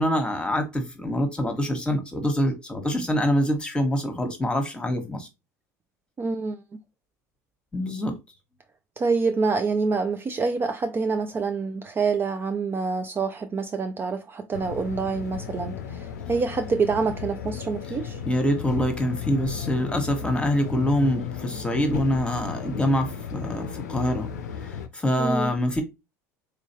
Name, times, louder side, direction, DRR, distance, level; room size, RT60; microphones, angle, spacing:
voice 1, 0.0-5.3 7.7-8.2 18.3-24.3 24.6-25.8, equal, 10° left, 1.2 m, -25 dB
voice 2, 6.2-6.6 9.0-18.2 25.2-25.5, right 4 dB, 25° right, 0.4 m, -26 dB
sound 1, 14.5-24.9, left 7 dB, 85° left, 0.5 m, -34 dB
3.7 x 3.0 x 2.9 m
hypercardioid pair, 75°, 9 cm